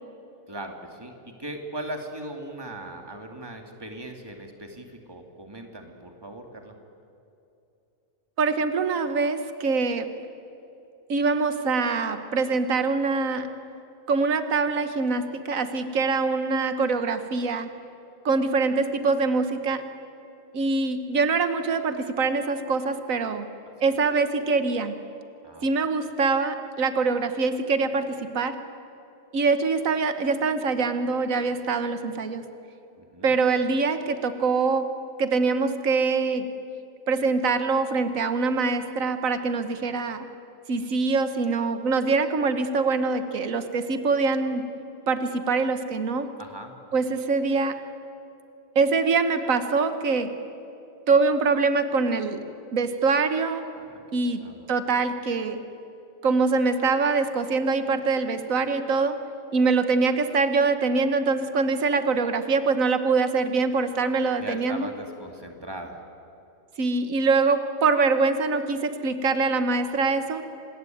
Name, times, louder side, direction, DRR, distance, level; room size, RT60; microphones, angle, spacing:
voice 1, 0.5-6.7 23.7-23.8 25.4-25.9 33.0-33.4 46.4-46.7 53.7-54.0 54.4-54.6 64.4-66.0, right 1 dB, 20° right, 3 dB, 2.6 m, -39 dB
voice 2, 8.4-10.1 11.1-13.5 14.1-17.7 18.2-19.8 20.5-23.4 23.8-24.9 25.6-28.6 29.3-32.4 33.2-34.9 35.2-36.5 37.1-40.3 40.7-44.6 45.1-46.3 46.9-47.8 48.7-50.3 51.1-52.4 52.7-53.6 54.1-54.4 54.7-55.6 56.2-59.2 59.5-64.9 66.8-70.4, right 4 dB, 85° right, 9 dB, 1.6 m, -24 dB
26.5 x 20.5 x 9.3 m, 2.7 s
omnidirectional pair, 1.4 m